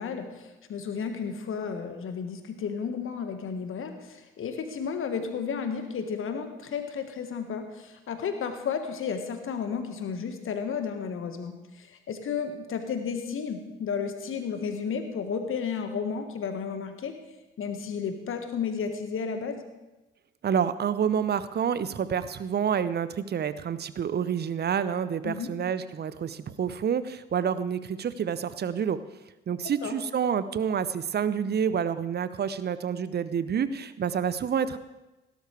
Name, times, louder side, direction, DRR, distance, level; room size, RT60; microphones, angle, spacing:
voice 1, 0.0-17.1 17.6-19.6 25.2-25.5 29.6-30.0, left 6 dB, 45° left, 7 dB, 1.6 m, -33 dB
voice 2, 20.4-29.0 29.5-34.8, right 8 dB, 35° right, 15 dB, 0.8 m, -28 dB
17.5 x 11.5 x 3.4 m, 1.0 s
figure-of-eight pair, 45°, 29 cm